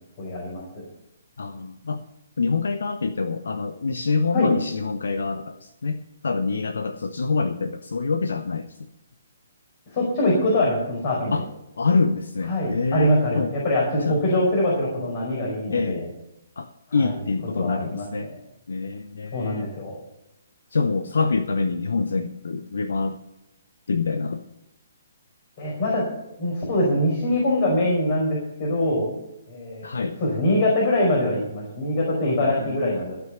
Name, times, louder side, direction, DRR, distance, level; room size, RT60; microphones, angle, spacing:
voice 1, 0.2-0.8 4.3-4.5 9.9-11.4 12.5-16.1 16.9-17.1 17.5-18.3 19.3-19.9 25.6-26.1 26.4-29.1 29.5-33.2, left 1 dB, 35° left, -3 dB, 5.2 m, -23 dB
voice 2, 1.4-2.0 2.4-8.9 11.3-11.5 11.8-13.5 14.1-14.2 15.7-16.0 16.6-18.3 18.7-19.7 20.7-23.2 23.9-24.4 29.8-30.2 32.4-33.0, left 4 dB, 65° left, 9 dB, 0.8 m, -26 dB
15.0 x 6.2 x 8.1 m, 0.88 s
figure-of-eight pair, 130°, 0 cm